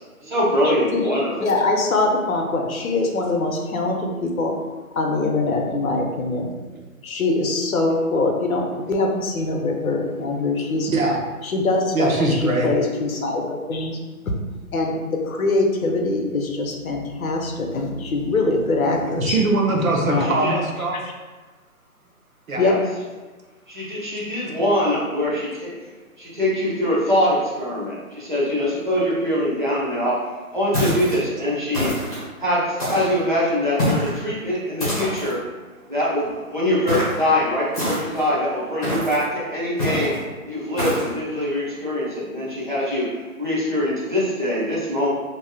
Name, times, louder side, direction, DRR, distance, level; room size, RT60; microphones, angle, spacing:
voice 1, 0.2-1.5 20.1-20.5 22.6-22.8 23.7-25.7 26.2-31.9 32.4-35.4 35.9-40.1 40.5-45.1, left 1 dB, 35° right, -7 dB, 0.7 m, -23 dB
voice 2, 1.4-4.6 5.0-6.5 7.0-10.9 11.4-14.0 14.7-19.4 20.1-20.5 22.6-22.8, left 2 dB, 70° left, 1 dB, 0.7 m, -23 dB
voice 3, 10.9-11.2 11.9-12.7 19.1-21.0 22.5-22.6 26.3-26.4, right 2 dB, 70° right, 0 dB, 0.7 m, -22 dB
sound 1, 30.7-31.2 31.7-32.2 32.8-33.2 33.8-34.2 34.8-35.3 36.9-37.2 37.7-38.3 38.8-39.2 39.8-40.2 40.8-41.1, left 1 dB, 25° left, 1.0 m, -25 dB
3.2 x 2.7 x 2.2 m, 1.3 s
hypercardioid pair, 180°, 43 cm